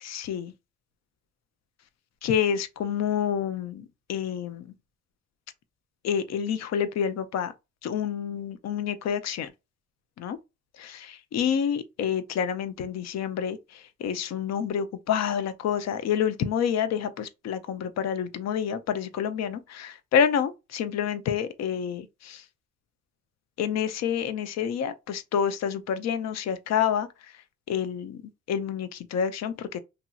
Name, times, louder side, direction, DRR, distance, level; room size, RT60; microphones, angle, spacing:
voice 1, 0.0-0.5 2.2-4.7 6.0-7.5 7.8-9.5 10.2-10.4 10.8-13.6 14.0-22.4 23.6-27.1 27.7-28.2 28.5-29.8, left 8 dB, 60° left, 0.5 m, -28 dB
3.0 x 2.7 x 2.3 m
cardioid pair, 90°, 30 cm